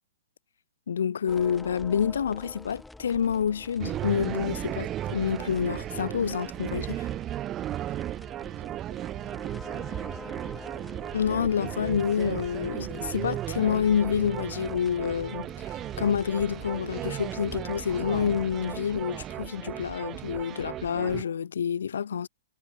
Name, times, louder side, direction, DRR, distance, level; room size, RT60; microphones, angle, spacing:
voice 1, 0.9-7.1 11.1-22.3, left 7 dB, 75° left, 0.4 m, -28 dB
sound 1, 1.3-18.7, left 2 dB, 5° left, 1.7 m, -47 dB
sound 2, 3.8-21.2, right 12 dB, 25° right, 0.6 m, -35 dB
voice 2, 7.7-8.1 8.4-10.9, right 7 dB, 75° right, 3.4 m, -57 dB
hypercardioid pair, 135°, 0 cm